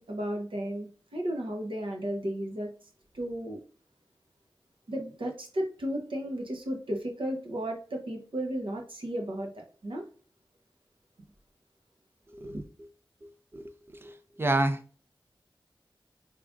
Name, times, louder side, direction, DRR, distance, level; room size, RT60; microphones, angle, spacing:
voice 1, 0.0-2.7 3.1-3.6 4.9-10.0 12.4-12.6, right 1 dB, 80° right, 1.1 m, -34 dB
voice 2, 13.2-14.8, right 2 dB, 25° right, 0.6 m, -30 dB
3.6 x 3.3 x 2.5 m
cardioid pair, 40°, 9 cm